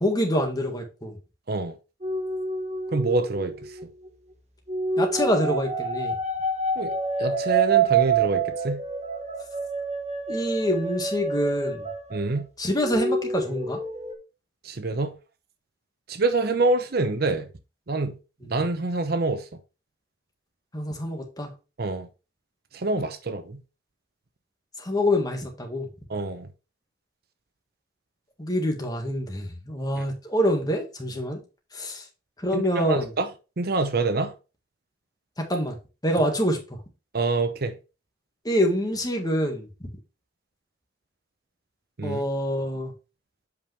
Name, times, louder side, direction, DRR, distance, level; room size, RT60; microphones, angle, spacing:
voice 1, 0.0-1.2 5.0-6.2 10.3-11.9 12.6-13.8 20.7-21.5 24.8-25.9 28.4-31.4 31.7-32.0 32.4-33.1 35.4-35.7 36.0-36.8 38.5-39.7 42.0-42.9, equal, 20° left, 1.8 m, -26 dB
sound 1, 2.0-4.1 4.7-12.4 12.7-14.1, right 4 dB, 40° right, 1.3 m, -27 dB
voice 2, 2.9-3.5 6.8-6.9 7.2-8.8 12.1-12.5 14.6-15.1 16.1-17.5 17.9-18.2 18.5-19.5 21.8-22.1 22.7-23.6 26.1-26.5 32.5-33.3 33.6-34.3 37.1-37.8 42.0-42.2, right 3 dB, 55° right, 0.8 m, -26 dB
8.1 x 5.3 x 3.4 m
head